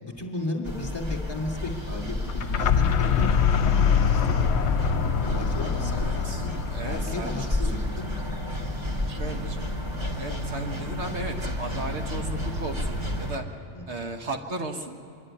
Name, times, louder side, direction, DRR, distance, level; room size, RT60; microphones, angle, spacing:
voice 1, 0.0-4.5 4.9-6.5 6.8-8.4 13.7-14.0, left 2 dB, 20° left, 0 dB, 2.2 m, -35 dB
sound 1, 0.7-13.4, left 1 dB, 25° right, 2.2 m, -31 dB
sound 2, 2.2-8.0, left 7 dB, 65° left, 1.0 m, -24 dB
voice 2, 5.9-7.3 9.1-9.7 10.2-13.4 13.9-15.0, right 2 dB, 65° right, 3 dB, 1.5 m, -35 dB
25.0 x 11.0 x 9.8 m, 2.6 s
omnidirectional pair, 1.2 m